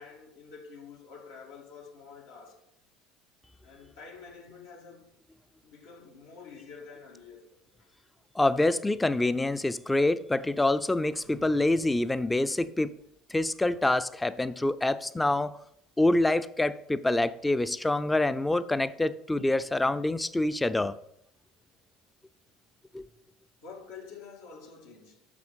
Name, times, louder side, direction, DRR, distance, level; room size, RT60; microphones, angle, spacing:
voice 1, 0.0-2.6 3.6-5.1 5.6-7.9 23.6-25.3, left 5 dB, 80° left, 1.8 m, -48 dB
voice 2, 8.4-12.9 13.3-15.5 16.0-21.0 22.9-23.0, left 2 dB, 10° left, 0.5 m, -26 dB
8.4 x 6.3 x 5.1 m
hypercardioid pair, 70°, 0 cm